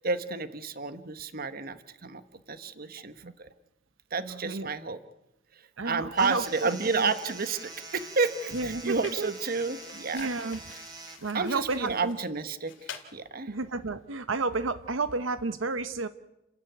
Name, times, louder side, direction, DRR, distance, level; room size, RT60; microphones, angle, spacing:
voice 1, 0.0-3.5 4.1-5.0 5.5-10.4 10.7-10.8 11.3-13.5, right 4 dB, 50° right, 11 dB, 1.3 m, -31 dB
voice 2, 4.2-4.7 5.8-7.1 8.5-9.3 10.1-10.6 11.2-12.2 13.5-16.1, right 3 dB, 80° right, 11 dB, 0.9 m, -31 dB
sound 1, 6.1-11.2, right 2 dB, 20° right, 4.0 m, -44 dB
sound 2, 7.7-7.8 8.2-13.1, left 7 dB, 70° left, 2.7 m, -49 dB
29.5 x 14.0 x 9.4 m, 0.94 s
head